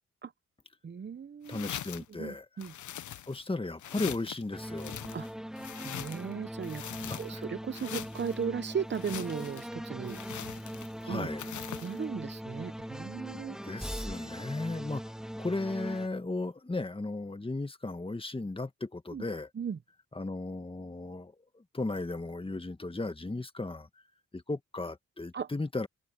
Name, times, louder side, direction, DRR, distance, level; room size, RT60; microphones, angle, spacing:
voice 1, 0.8-1.7 2.1-2.7 5.1-5.3 5.8-6.8 7.2-10.6 11.1-11.3 11.8-13.6 19.1-19.2 19.5-19.8 25.3-25.5, right 7 dB, 35° right, 0.7 m, -37 dB
sound 1, 1.4-2.1 2.6-3.5 3.8-4.4 4.8-6.3 6.6-7.4 7.7-8.4 8.9-9.7 10.0-11.0 11.4-12.0, left 11 dB, 70° left, 0.8 m, -42 dB
voice 2, 1.5-2.5 3.3-5.0 6.8-7.2 11.0-11.4 13.6-15.0 15.4-19.5 20.1-23.9 24.3-25.9, left 2 dB, 15° left, 1.8 m, -35 dB
sound 2, 4.5-16.1, equal, ahead, 1.9 m, -40 dB
open air
cardioid pair, 75°, 31 cm